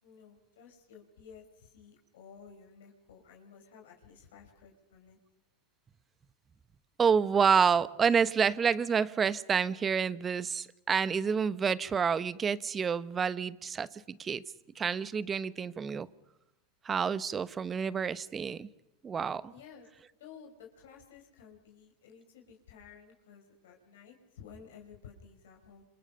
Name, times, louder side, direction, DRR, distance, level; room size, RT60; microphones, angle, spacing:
voice 1, 0.0-5.2 19.5-19.9 20.2-25.8, left 6 dB, 70° left, 1 dB, 5.0 m, -54 dB
voice 2, 7.0-14.4 14.8-16.1 16.8-18.7 19.0-19.5, right 6 dB, 25° right, 17 dB, 1.0 m, -28 dB
29.0 x 27.0 x 5.7 m, 0.94 s
hypercardioid pair, 95°, 0 cm